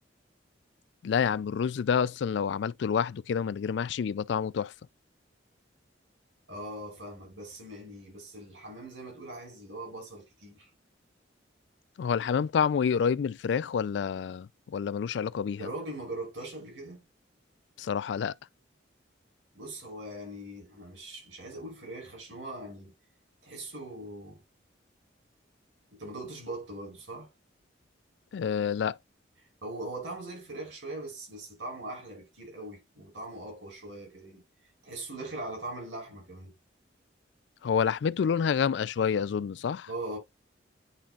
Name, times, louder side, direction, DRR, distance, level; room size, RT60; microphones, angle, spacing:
voice 1, 1.0-4.7 12.0-15.7 17.8-18.3 28.3-29.0 37.6-39.9, left 7 dB, 70° left, 0.3 m, -28 dB
voice 2, 6.5-10.7 15.6-17.0 19.5-22.9 23.4-24.4 25.9-27.3 29.6-34.4 34.8-36.5 39.9-40.2, right 2 dB, 85° right, 4.7 m, -41 dB
10.5 x 3.8 x 2.4 m
head